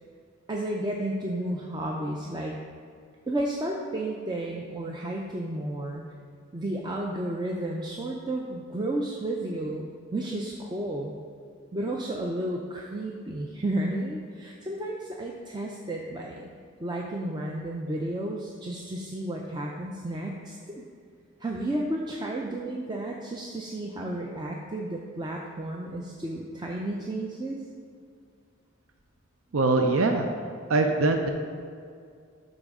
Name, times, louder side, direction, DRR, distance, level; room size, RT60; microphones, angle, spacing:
voice 1, 0.5-2.6 3.3-6.0 6.5-11.1 11.7-16.5 16.8-20.8 21.4-27.6, right 1 dB, 20° right, -1 dB, 0.5 m, -32 dB
voice 2, 29.5-30.3 30.7-31.3, right 3 dB, 75° right, 4 dB, 0.5 m, -22 dB
12.0 x 4.1 x 3.6 m, 2.3 s
head